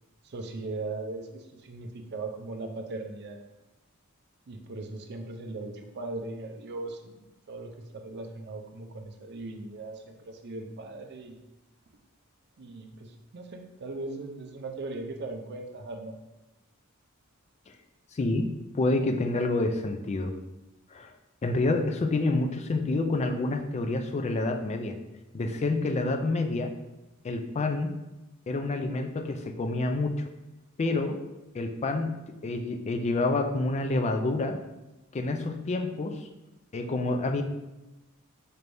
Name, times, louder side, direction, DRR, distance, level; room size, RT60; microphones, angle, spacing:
voice 1, 0.2-3.4 4.5-11.4 12.6-16.2, right 2 dB, 50° right, 5 dB, 0.5 m, -39 dB
voice 2, 18.1-18.5 18.7-20.3 20.9-21.1 21.4-24.9 25.3-26.7 27.2-27.9 28.5-30.1 30.8-31.2 31.5-32.1 32.4-34.6 35.1-36.3 36.7-37.4, left 2 dB, 30° left, 6 dB, 0.3 m, -28 dB
4.4 x 3.3 x 2.6 m, 1.0 s
head